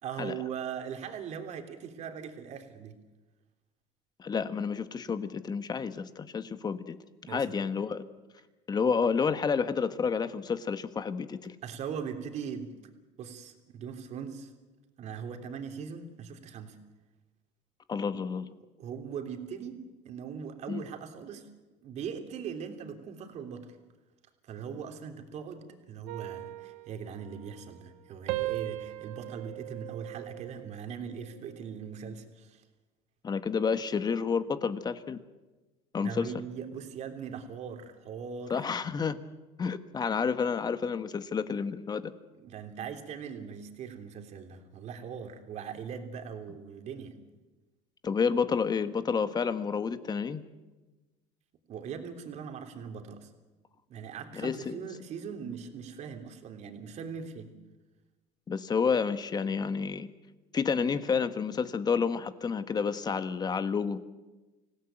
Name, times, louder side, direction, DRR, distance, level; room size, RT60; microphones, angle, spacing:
voice 1, 0.0-3.0 7.2-7.5 11.6-12.8 13.2-14.5 15.0-16.8 18.1-18.2 18.8-21.5 21.8-23.8 24.4-32.6 36.0-38.6 42.4-47.2 51.7-53.3 53.9-57.5, right 7 dB, 50° right, 5 dB, 3.2 m, -40 dB
voice 2, 4.2-7.0 7.2-8.0 8.7-11.5 17.9-18.5 20.7-20.8 33.2-35.2 35.9-36.3 38.5-39.2 39.6-42.1 48.0-50.4 54.3-54.8 58.5-60.1 60.5-64.0, left 5 dB, 30° left, 11 dB, 1.5 m, -30 dB
sound 1, 26.1-28.0 28.3-30.8 31.3-31.7, right 19 dB, 85° right, 1.2 m, -39 dB
26.0 x 17.0 x 9.1 m, 1.2 s
cardioid pair, 115°, 15 cm